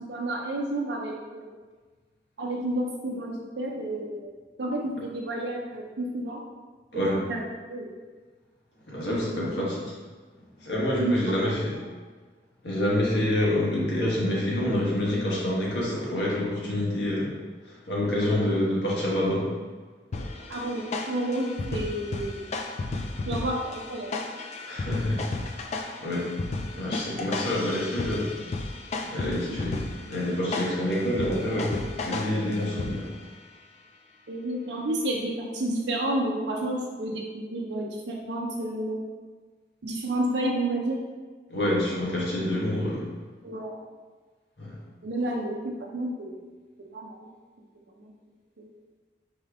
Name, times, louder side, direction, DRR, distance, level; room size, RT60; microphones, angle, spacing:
voice 1, 0.1-1.5 2.4-4.3 4.6-6.4 6.9-7.4 7.7-7.9 9.5-9.6 11.0-11.4 18.5-18.6 20.5-22.5 23.3-24.1 34.3-39.0 39.8-41.0 43.4-43.7 45.0-46.4 46.9-47.3 48.6-48.7, right 1 dB, 70° right, -2 dB, 0.5 m, -30 dB
voice 2, 8.9-9.8 10.6-11.8 12.6-17.3 17.7-19.5 24.6-25.6 26.0-26.3 26.7-28.3 29.1-29.8 30.1-31.8 32.0-33.1 41.5-43.1 44.6-44.7, left 1 dB, 65° left, -5 dB, 1.3 m, -27 dB
sound 1, 20.1-33.3, left 3 dB, 40° left, 0.3 m, -34 dB
4.4 x 3.5 x 3.4 m, 1.4 s
head